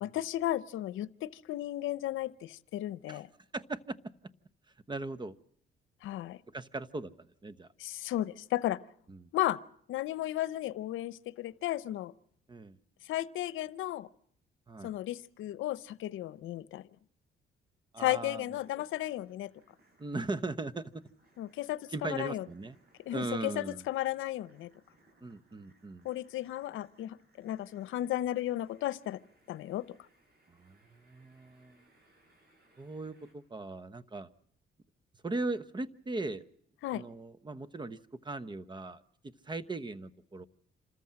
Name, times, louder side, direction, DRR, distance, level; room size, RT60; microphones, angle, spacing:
voice 1, 0.0-3.3 6.0-6.4 7.8-8.8 9.3-9.6 9.9-12.1 13.0-14.1 14.8-16.8 18.0-19.5 21.4-22.5 23.1-24.7 26.0-29.2 29.5-29.9 36.8-37.0, left 14 dB, 85° left, 19 dB, 0.7 m, -34 dB
voice 2, 3.5-4.0 4.9-5.4 6.5-7.7 9.1-9.2 12.5-12.8 14.7-14.9 17.9-18.4 20.0-20.9 21.9-22.8 23.1-23.8 25.2-26.1 30.5-30.8 31.1-31.8 32.8-34.3 35.2-36.4 36.9-38.0 38.2-40.5, right 2 dB, 20° right, 16 dB, 1.0 m, -38 dB
sound 1, 18.4-33.3, right 1 dB, 50° right, 7.4 m, -68 dB
27.0 x 14.0 x 7.5 m, 0.67 s
cardioid pair, 90°, 20 cm